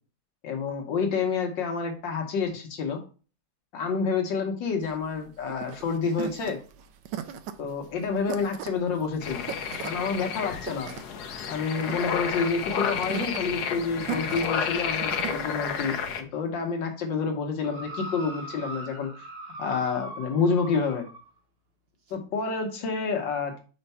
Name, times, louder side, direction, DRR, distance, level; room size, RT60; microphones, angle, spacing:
voice 1, 0.4-3.0 3.7-6.6 7.6-9.5 9.8-10.9 11.5-19.1 19.6-21.0 22.1-23.6, left 5 dB, 80° left, 3 dB, 1.7 m, -28 dB
sound 1, 4.8-15.4, right 10 dB, 80° right, 1.3 m, -38 dB
sound 2, 9.2-16.2, left 7 dB, 65° left, 1.3 m, -31 dB
sound 3, 17.6-21.3 22.1-22.2, right 1 dB, 40° right, 1.0 m, -40 dB
5.1 x 4.4 x 5.5 m, 0.37 s
omnidirectional pair, 2.0 m